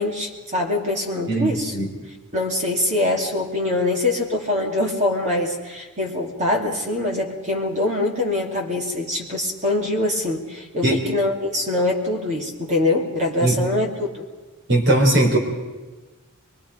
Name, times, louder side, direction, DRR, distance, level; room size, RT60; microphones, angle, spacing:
voice 1, 0.0-1.8 2.3-14.3, left 2 dB, 35° right, 1 dB, 2.7 m, -23 dB
voice 2, 1.3-1.9 10.8-11.0 13.4-13.6 14.7-15.4, right 1 dB, 55° right, 2 dB, 4.1 m, -19 dB
24.0 x 23.0 x 5.1 m, 1.3 s
head